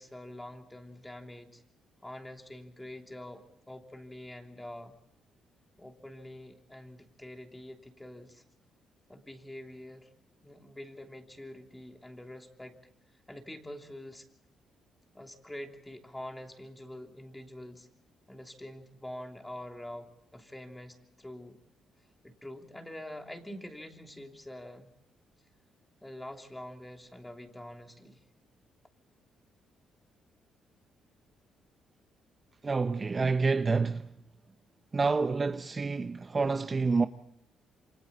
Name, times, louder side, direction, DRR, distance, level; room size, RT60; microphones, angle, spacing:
voice 1, 0.0-1.6 2.0-4.9 5.8-8.4 9.1-10.1 10.4-12.8 13.3-14.3 15.1-17.9 18.3-21.6 22.2-24.9 26.0-28.2, left 1 dB, 10° left, 3.0 m, -45 dB
voice 2, 32.6-34.1 34.9-37.1, right 4 dB, 30° right, 0.8 m, -28 dB
28.5 x 25.0 x 4.2 m
cardioid pair, 90°, 0 cm